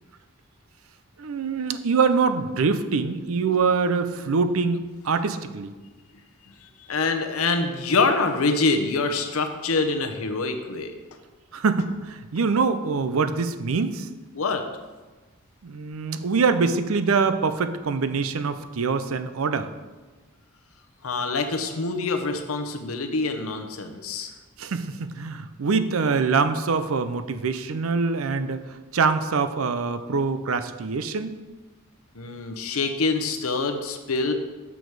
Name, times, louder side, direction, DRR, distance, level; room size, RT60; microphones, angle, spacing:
voice 1, 1.2-5.7 11.5-14.1 15.6-19.7 24.6-31.3, right 4 dB, 80° right, 11 dB, 0.5 m, -24 dB
voice 2, 6.8-10.9 14.3-14.7 21.0-24.3 32.1-34.3, left 3 dB, 85° left, 6 dB, 0.8 m, -25 dB
6.9 x 6.1 x 4.7 m, 1.3 s
head